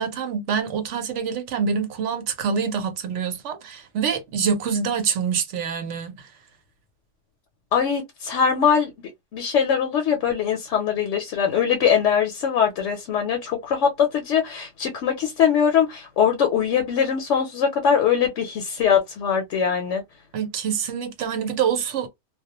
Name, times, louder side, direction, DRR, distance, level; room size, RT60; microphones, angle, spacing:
voice 1, 0.0-6.3 20.3-22.1, right 6 dB, 70° right, 1.0 m, -26 dB
voice 2, 7.7-8.9 9.3-20.0, left 7 dB, 75° left, 0.9 m, -22 dB
2.3 x 2.1 x 2.8 m
omnidirectional pair, 1.3 m